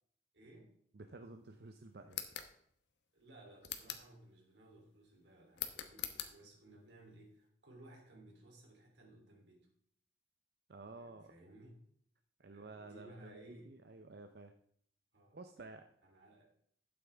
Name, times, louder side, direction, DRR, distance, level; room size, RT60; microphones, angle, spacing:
voice 1, 0.3-0.7 3.1-9.7 11.0-11.8 12.4-13.7 15.1-15.4 16.0-16.5, right 1 dB, 85° right, 0 dB, 3.3 m, -59 dB
voice 2, 0.9-2.2 10.7-11.3 12.4-14.5 15.3-15.9, right 3 dB, 65° right, 6 dB, 0.6 m, -52 dB
sound 1, 2.1-2.5 3.6-4.1 5.5-6.3, left 10 dB, 85° left, 1.0 m, -43 dB
11.5 x 8.7 x 3.5 m, 0.66 s
head